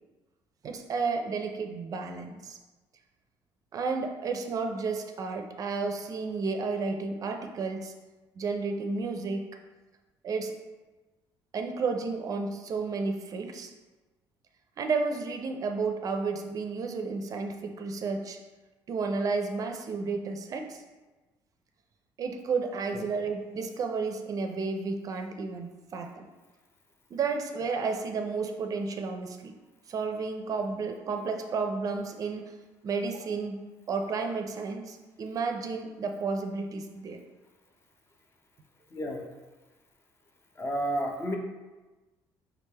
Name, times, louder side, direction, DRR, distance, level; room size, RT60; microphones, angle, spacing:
voice 1, 0.6-2.6 3.7-7.9 8.4-9.5 10.2-10.5 11.5-13.7 14.8-18.4 18.9-20.8 22.2-26.3 27.1-29.5 29.9-32.5 32.8-33.6 33.9-37.2, right 4 dB, 45° right, 5 dB, 0.5 m, -32 dB
voice 2, 38.9-39.2 40.6-41.4, equal, 30° left, 2 dB, 0.6 m, -31 dB
4.8 x 3.3 x 3.3 m, 1.2 s
cardioid pair, 115°, 8 cm